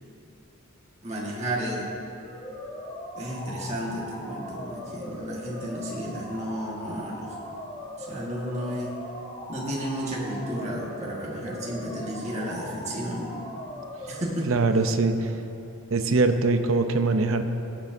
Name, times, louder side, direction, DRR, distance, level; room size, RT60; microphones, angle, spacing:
voice 1, 1.0-1.9 3.1-7.4 8.0-8.9 9.5-13.3 14.1-14.5, equal, 30° right, -4 dB, 1.6 m, -32 dB
sound 1, 2.2-14.2, left 1 dB, 20° left, 2.0 m, -39 dB
voice 2, 14.5-15.3 15.9-17.4, right 3 dB, 65° right, 8 dB, 0.6 m, -22 dB
20.5 x 6.8 x 2.7 m, 2.9 s
head